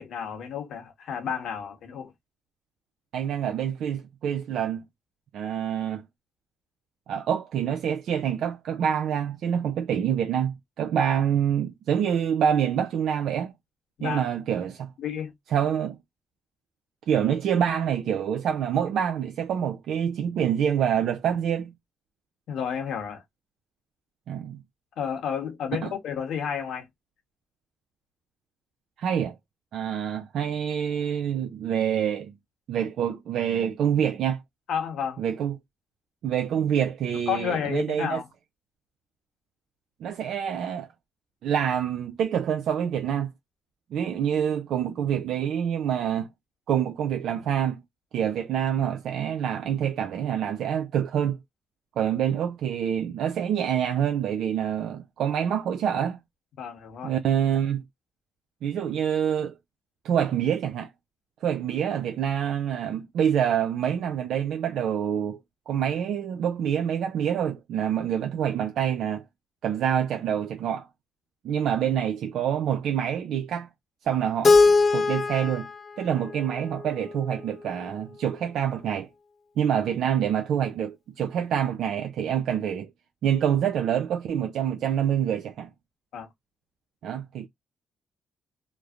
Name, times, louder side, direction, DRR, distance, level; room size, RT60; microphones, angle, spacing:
voice 1, 0.0-2.1 14.0-14.2 15.0-15.3 22.5-23.2 25.0-26.9 34.7-35.2 37.3-38.3 56.6-57.1 86.1-86.3, left 7 dB, 70° left, 1.1 m, -31 dB
voice 2, 3.1-4.8 5.3-6.0 7.1-13.5 14.0-14.9 15.5-16.0 17.1-21.7 24.3-24.6 25.8-25.9 29.0-29.4 29.7-32.3 32.7-34.4 35.2-35.5 36.2-38.2 40.0-40.9 41.4-43.3 43.9-46.3 46.7-47.8 48.1-51.4 52.0-56.2 57.0-57.8 58.6-59.5 60.0-60.9 61.4-65.4 65.7-69.2 69.6-70.9 71.4-73.7 74.0-74.6 74.9-75.7 76.0-79.1 79.6-82.9 83.2-85.7 87.0-87.5, right 9 dB, 75° right, 0.4 m, -26 dB
Keyboard (musical), 74.4-77.4, left 3 dB, 40° left, 0.5 m, -22 dB
3.1 x 2.1 x 2.3 m
cardioid pair, 90°, 0 cm